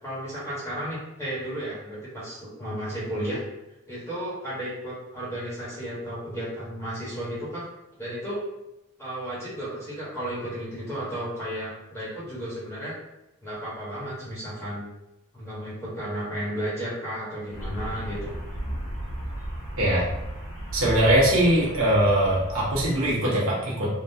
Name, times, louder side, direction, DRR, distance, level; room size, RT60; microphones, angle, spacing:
voice 1, 0.0-3.4 3.9-7.7 8.0-8.4 9.0-12.9 13.4-14.9 15.3-18.3, equal, 10° left, -9 dB, 1.2 m, -33 dB
sound 1, 17.5-23.1, right 1 dB, 85° left, 1.4 m, -35 dB
voice 2, 20.7-23.9, right 1 dB, 70° right, -5 dB, 1.0 m, -21 dB
3.6 x 2.4 x 2.7 m, 0.93 s
head